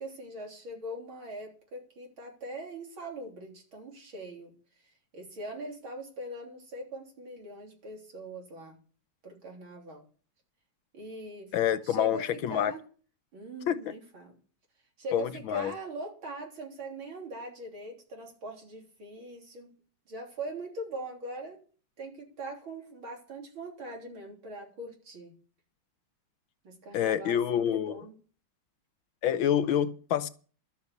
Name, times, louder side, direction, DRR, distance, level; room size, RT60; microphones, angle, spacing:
voice 1, 0.0-4.5 5.1-8.8 9.2-10.0 10.9-11.5 11.8-12.8 13.3-14.3 15.0-19.7 20.1-21.6 22.0-25.3 26.6-28.2, right 1 dB, 85° right, 4.3 m, -41 dB
voice 2, 11.5-12.7 13.7-13.8 15.1-15.7 26.9-28.0 29.2-30.3, left 10 dB, 80° left, 1.6 m, -27 dB
12.5 x 7.2 x 8.3 m
omnidirectional pair, 2.2 m